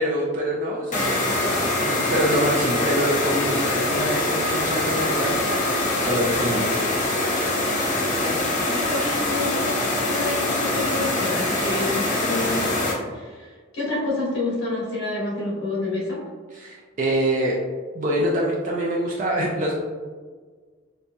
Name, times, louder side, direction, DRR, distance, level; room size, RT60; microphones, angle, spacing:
voice 1, 0.0-5.7 6.0-6.9 16.5-17.5 17.9-19.7, right 1 dB, 40° right, -3 dB, 0.4 m, -25 dB
Computer Fan Loopable Background Noise, 0.9-12.9, left 2 dB, 40° left, 0.6 m, -24 dB
voice 2, 8.2-16.2, left 2 dB, 80° left, -7 dB, 1.3 m, -29 dB
4.0 x 2.6 x 2.2 m, 1.5 s
head